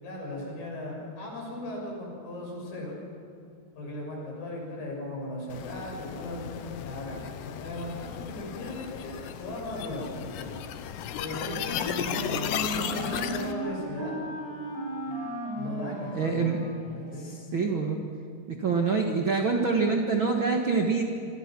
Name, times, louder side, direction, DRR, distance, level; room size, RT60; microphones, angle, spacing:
voice 1, 0.0-3.0 3.8-10.5 11.2-11.9 12.2-14.2 15.0-15.2 15.5-17.3 17.6-17.7, left 1 dB, 55° left, -2 dB, 8.2 m, -37 dB
sound 1, 5.5-13.5, left 9 dB, 85° left, 3.3 m, -35 dB
Wind instrument woodwind instrument, 11.3-17.4, right 1 dB, 5° right, 6.6 m, -36 dB
voice 2, 16.1-16.6 17.2-18.0 18.5-21.0, right 4 dB, 70° right, 2 dB, 1.1 m, -26 dB
28.5 x 25.0 x 6.1 m, 2.5 s
omnidirectional pair, 5.0 m